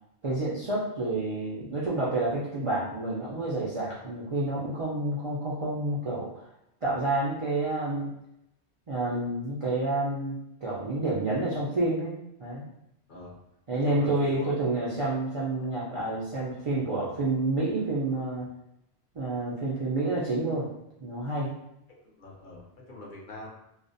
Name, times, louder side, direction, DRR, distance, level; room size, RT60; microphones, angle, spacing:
voice 1, 0.2-6.5 6.8-8.1 8.9-12.7 13.7-18.5 19.1-20.7 21.0-21.5, right 2 dB, 45° right, -8 dB, 0.4 m, -29 dB
voice 2, 13.7-14.5 22.0-23.6, left 1 dB, 55° left, -4 dB, 0.7 m, -42 dB
2.4 x 2.0 x 2.6 m, 0.83 s
omnidirectional pair, 1.1 m